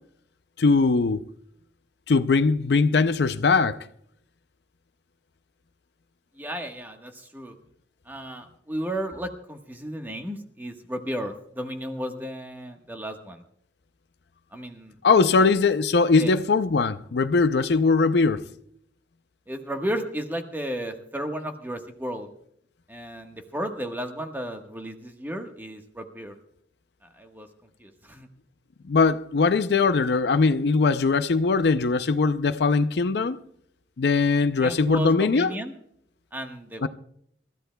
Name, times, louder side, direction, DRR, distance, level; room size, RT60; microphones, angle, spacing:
voice 1, 0.6-1.2 2.1-3.8 15.0-18.4 28.9-33.4 34.0-35.5 36.8-36.9, left 4 dB, 65° left, 0.5 m, -21 dB
voice 2, 6.3-7.6 8.1-13.4 14.5-14.9 15.4-15.5 16.2-16.3 19.5-22.3 22.9-26.4 27.1-27.5 27.8-28.3 34.6-35.7 36.3-36.9, right 1 dB, 10° right, 1.3 m, -34 dB
27.5 x 13.5 x 2.2 m
head